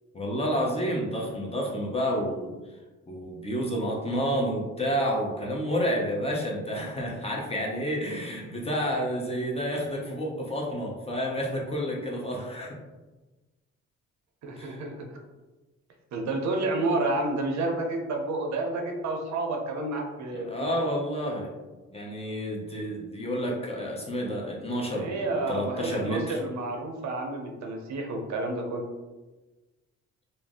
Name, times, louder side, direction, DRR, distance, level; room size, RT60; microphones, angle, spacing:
voice 1, 0.1-2.5 3.1-12.8 14.6-14.8 20.3-21.5 21.9-26.4, equal, 20° left, -2 dB, 0.7 m, -30 dB
voice 2, 14.4-15.1 16.1-20.8 24.9-28.8, right 2 dB, 65° right, 2 dB, 0.6 m, -30 dB
2.5 x 2.0 x 3.4 m, 1.2 s
cardioid pair, 90°, 30 cm